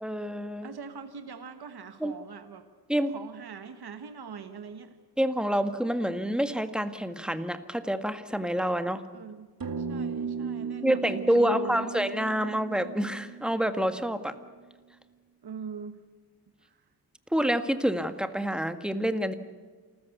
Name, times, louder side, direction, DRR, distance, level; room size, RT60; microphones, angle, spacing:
voice 1, 0.0-0.7 2.0-2.1 2.9-3.1 5.2-9.0 10.8-14.3 17.3-19.3, equal, ahead, 9 dB, 1.6 m, -27 dB
voice 2, 0.6-2.7 3.1-5.0 9.1-9.5 9.8-11.9 15.4-16.0 16.6-16.8, right 6 dB, 80° right, 8 dB, 1.3 m, -42 dB
sound 1, 9.6-14.3, right 6 dB, 65° right, 2.3 m, -36 dB
28.0 x 14.5 x 8.4 m, 1.5 s
wide cardioid pair, 70°, 38 cm